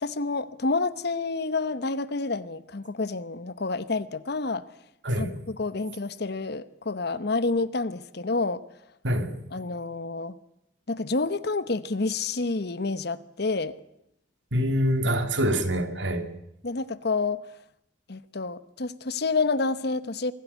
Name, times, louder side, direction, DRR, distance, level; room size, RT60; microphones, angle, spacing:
voice 1, 0.0-4.6 5.1-8.6 9.5-10.3 10.9-13.7 16.6-17.5 18.1-20.3, left 3 dB, 60° left, 1.0 m, -29 dB
voice 2, 9.0-9.3 14.5-16.3, equal, 80° right, 2.4 m, -25 dB
24.5 x 15.5 x 8.2 m
head